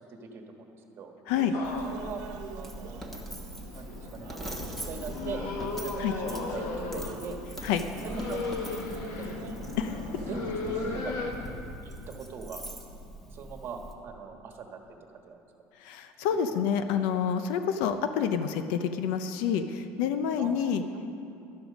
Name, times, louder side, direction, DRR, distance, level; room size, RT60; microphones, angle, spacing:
voice 1, 0.1-0.6 0.9-1.1 1.8-2.2 2.5-3.2 3.7-4.3 4.8-5.4 5.8-7.4 8.0-8.4 9.1-9.6 10.3-11.3 11.8-12.6 13.3-14.8 15.1-15.4 16.6-16.7 20.4-20.5 20.9-21.1, right 5 dB, 40° right, 3 dB, 1.4 m, -41 dB
sound 1, 1.3-11.8, right 6 dB, 70° right, 1.0 m, -47 dB
sound 2, 1.5-11.3, left 3 dB, 70° left, 1.6 m, -37 dB
Coin (dropping), 1.6-13.9, right 1 dB, 5° left, 1.2 m, -42 dB
voice 2, 15.8-20.8, left 8 dB, 90° left, 9 dB, 0.7 m, -28 dB
12.5 x 12.0 x 5.2 m, 2.6 s
cardioid pair, 150°, 6 cm